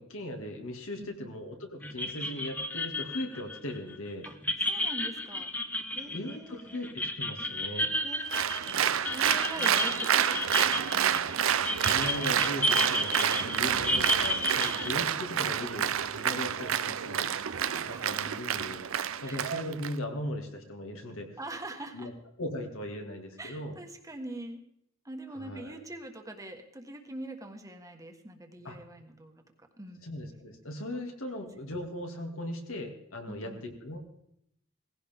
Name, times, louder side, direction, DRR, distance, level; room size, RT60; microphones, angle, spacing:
voice 1, 0.0-4.3 6.1-7.9 11.8-17.3 17.7-21.4 21.9-22.1 22.4-23.7 25.3-25.8 28.6-28.8 30.0-34.0, left 1 dB, 70° left, 3 dB, 2.4 m, -38 dB
voice 2, 1.0-1.3 4.2-4.4 4.6-5.5 5.9-6.8 8.0-8.8 9.1-11.4 13.4-13.6 16.3-18.2 19.2-19.5 21.4-22.1 23.4-24.6 25.0-29.4 29.8-30.0 33.2-33.6, right 1 dB, 15° right, 4 dB, 1.5 m, -44 dB
sound 1, 1.8-14.9, left 1 dB, 10° left, 0.8 m, -32 dB
Applause, 8.3-19.9, right 9 dB, 70° right, 0.6 m, -29 dB
18.5 x 16.0 x 3.6 m, 0.76 s
head